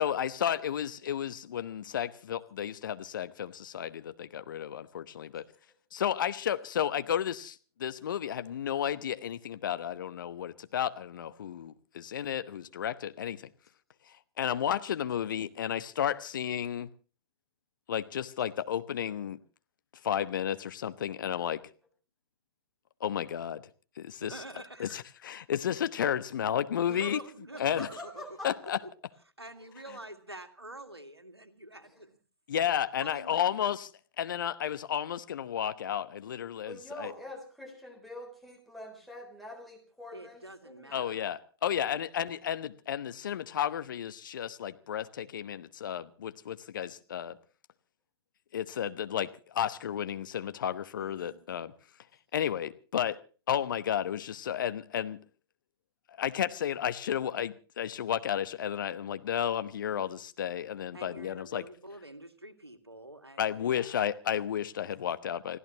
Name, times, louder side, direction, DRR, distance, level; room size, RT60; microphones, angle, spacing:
voice 1, 0.0-5.4 5.9-13.5 14.4-16.9 17.9-19.4 20.0-21.6 23.0-23.6 24.0-24.3 24.8-27.2 27.6-27.9 28.4-28.8 32.5-33.9 34.2-37.1 40.9-47.4 48.5-51.7 52.3-53.2 53.5-55.2 56.1-61.6 63.4-65.6, left 9 dB, 55° left, 1.0 m, -32 dB
voice 2, 24.2-25.0 26.9-28.2 28.8-28.9 29.4-32.2 32.5-32.6 33.0-33.7 40.1-41.2 51.0-51.4 60.9-63.9, right 1 dB, 85° right, 2.0 m, -47 dB
voice 3, 27.5-28.7 31.8-31.9 36.7-41.2 61.0-61.3, left 1 dB, ahead, 3.9 m, -45 dB
29.5 x 15.5 x 3.0 m
figure-of-eight pair, 115°, 13 cm